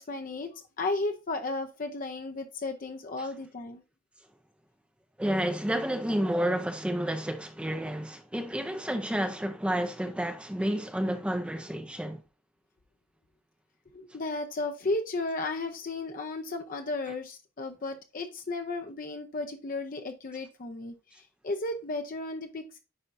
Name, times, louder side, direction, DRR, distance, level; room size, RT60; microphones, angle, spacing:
voice 1, 0.0-3.8 13.9-22.8, left 2 dB, 45° left, 0.6 m, -34 dB
voice 2, 5.2-12.2, equal, 5° right, 0.5 m, -30 dB
9.7 x 4.4 x 2.6 m
head